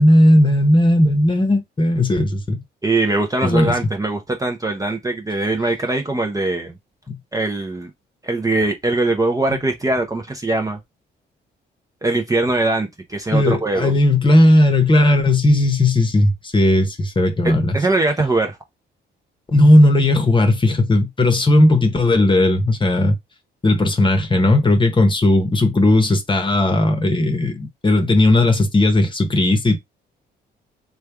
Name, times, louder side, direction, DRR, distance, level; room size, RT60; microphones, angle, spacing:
voice 1, 0.0-2.6 3.4-3.7 7.1-7.2 13.3-17.8 19.5-23.1 23.6-29.8, left 1 dB, 25° left, 1.0 m, -16 dB
voice 2, 2.8-6.8 7.3-7.9 8.2-10.8 12.0-13.9 17.4-18.6, right 2 dB, 15° right, 0.7 m, -21 dB
3.3 x 2.3 x 3.5 m
cardioid pair, 90°, 20 cm